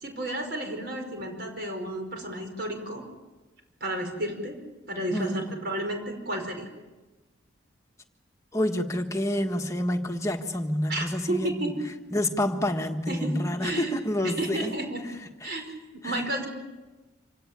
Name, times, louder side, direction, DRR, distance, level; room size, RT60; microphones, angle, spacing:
voice 1, 0.0-3.0 3.8-4.6 4.9-6.7 10.9-11.7 13.1-13.9 14.2-15.0 15.4-15.7 16.0-16.5, right 1 dB, 50° right, 4 dB, 5.3 m, -32 dB
voice 2, 5.1-5.5 8.5-11.7 12.1-14.7 16.0-16.2, left 1 dB, 15° left, 4 dB, 1.5 m, -28 dB
26.5 x 17.0 x 10.0 m, 1.2 s
head